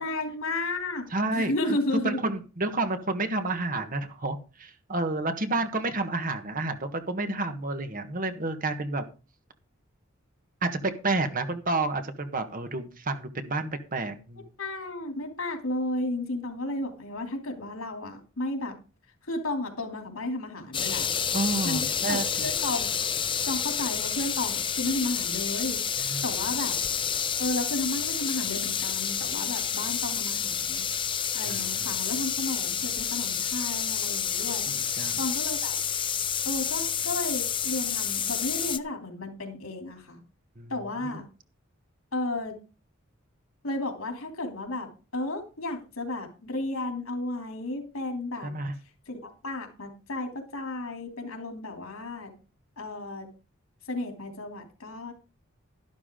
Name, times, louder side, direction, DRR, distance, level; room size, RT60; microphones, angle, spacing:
voice 1, 0.0-2.2 14.6-18.7 19.2-21.1 21.6-22.9 23.5-25.8 26.2-26.7 27.4-30.9 31.3-34.6 35.2-35.8 36.4-40.2 40.7-41.2 42.1-42.5 43.6-48.5 49.1-52.3 52.8-53.3 53.9-55.1, left 2 dB, 85° left, 3 dB, 3.1 m, -33 dB
voice 2, 1.1-1.5 2.0-9.0 10.6-14.4 21.3-22.5 26.0-26.2 31.5-31.6 34.5-35.2 40.6-40.7 48.4-48.7, right 2 dB, 40° right, 8 dB, 1.4 m, -30 dB
sound 1, 20.7-38.8, left 8 dB, 25° left, 0.7 m, -29 dB
12.0 x 12.0 x 3.8 m, 0.33 s
head